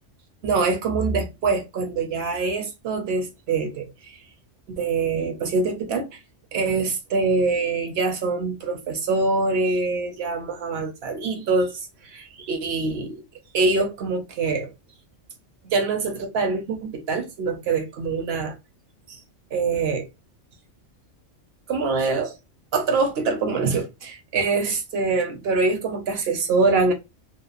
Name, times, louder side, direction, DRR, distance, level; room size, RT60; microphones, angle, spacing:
voice 1, 0.4-4.2 4.7-6.2 6.5-13.2 13.5-14.7 15.6-18.5 19.1-19.2 19.5-20.1 21.7-22.3 22.7-26.9, right 3 dB, 65° right, 0.7 m, -24 dB
2.9 x 2.0 x 2.4 m
omnidirectional pair, 1.3 m